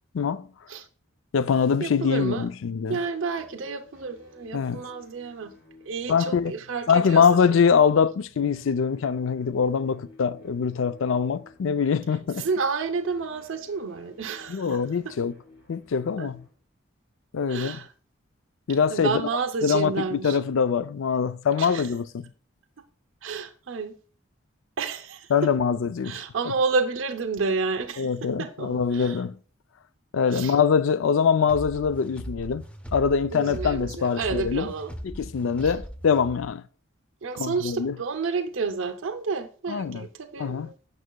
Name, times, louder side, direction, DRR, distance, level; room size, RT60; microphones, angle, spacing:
voice 1, 0.1-0.5 1.3-3.0 4.5-4.8 6.1-6.5 6.9-12.5 14.5-15.3 15.7-16.4 17.3-17.8 18.7-19.2 19.6-22.3 25.3-26.2 28.0-29.4 30.1-32.6 32.9-34.7 35.0-36.6 37.3-38.0 39.7-40.1 40.4-40.7, left 6 dB, 70° left, 0.4 m, -23 dB
voice 2, 1.8-2.5 2.9-5.5 5.8-7.2 7.5-7.6 12.4-15.1 16.2-16.3 17.5-17.9 18.9-20.4 21.6-21.9 23.2-23.9 24.8-25.5 26.0-29.2 30.3-30.6 33.3-34.9 35.6-35.7 37.2-40.7, right 4 dB, 70° right, 0.6 m, -30 dB
sound 1, 2.7-16.5, left 2 dB, 45° left, 2.6 m, -55 dB
sound 2, 31.4-36.5, equal, 5° left, 0.5 m, -39 dB
9.2 x 6.0 x 2.2 m
head